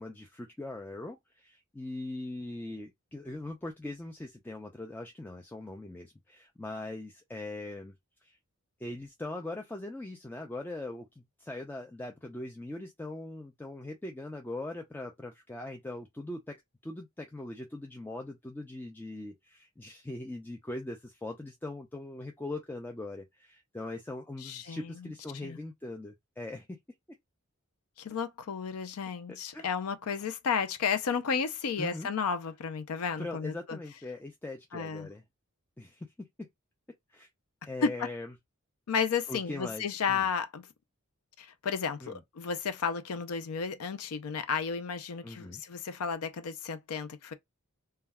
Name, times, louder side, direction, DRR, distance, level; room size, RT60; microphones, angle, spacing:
voice 1, 0.0-7.9 8.2-8.4 8.8-16.6 16.8-26.8 29.3-29.7 31.8-32.1 33.2-35.2 35.8-36.5 37.1-37.3 37.6-38.3 39.3-40.3 42.0-42.2 45.2-45.6, left 2 dB, 10° left, 0.3 m, -41 dB
voice 2, 24.4-25.1 25.4-25.6 28.0-33.8 34.7-35.1 37.8-37.9 38.9-40.7 41.4-47.3, left 6 dB, 80° left, 0.5 m, -33 dB
2.3 x 2.2 x 3.4 m
head